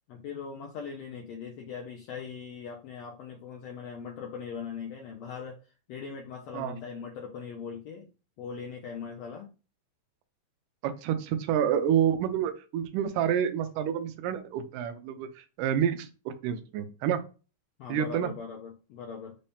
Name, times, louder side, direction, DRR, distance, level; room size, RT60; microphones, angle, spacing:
voice 1, 0.1-5.6 5.9-8.1 8.4-9.5 17.8-19.4, left 6 dB, 75° left, 1 dB, 1.5 m, -40 dB
voice 2, 10.8-17.2 17.9-18.3, right 9 dB, 85° right, 9 dB, 2.2 m, -28 dB
5.5 x 2.8 x 3.4 m, 0.33 s
omnidirectional pair, 3.8 m